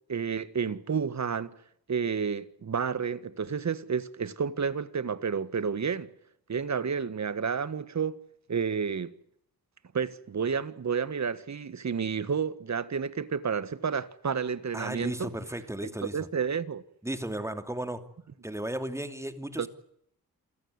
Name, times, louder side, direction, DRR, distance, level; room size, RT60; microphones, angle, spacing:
voice 1, 0.1-1.5 1.9-6.1 6.5-8.2 8.5-9.1 9.9-15.3 15.8-16.8 19.6-19.7, right 6 dB, 45° right, 1.6 m, -30 dB
voice 2, 14.7-16.3 17.0-18.0 18.4-19.7, right 1 dB, 10° right, 2.7 m, -35 dB
28.0 x 17.0 x 9.6 m
wide cardioid pair, 110°, 37 cm